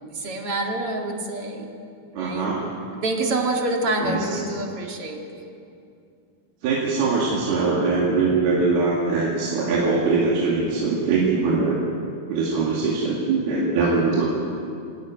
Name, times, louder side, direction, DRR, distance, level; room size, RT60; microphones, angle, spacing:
voice 1, 0.1-1.7 2.1-2.5 3.0-5.5, right 2 dB, 40° right, 1 dB, 2.5 m, -27 dB
voice 2, 2.1-2.7 4.0-4.4 6.6-11.8 12.3-14.3, right 4 dB, 70° right, -4 dB, 4.3 m, -22 dB
28.0 x 13.0 x 9.2 m, 2.4 s
omnidirectional pair, 4.7 m